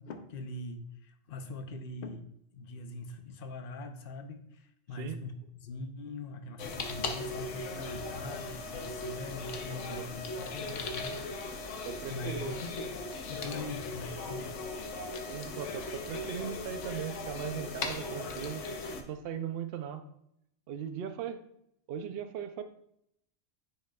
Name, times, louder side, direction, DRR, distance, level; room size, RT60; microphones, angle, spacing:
voice 1, 0.0-2.2 2.5-11.8 12.1-12.3 12.6-12.9 13.3-14.5, left 2 dB, 55° left, 7 dB, 0.9 m, -42 dB
sound 1, 6.6-19.0, left 3 dB, 85° left, 1.1 m, -38 dB
voice 2, 9.7-10.1 11.8-12.6 15.3-18.7 19.0-20.0 20.7-21.4 21.9-22.6, right 8 dB, 60° right, 8 dB, 0.8 m, -38 dB
10.0 x 5.5 x 2.3 m, 0.74 s
omnidirectional pair, 1.2 m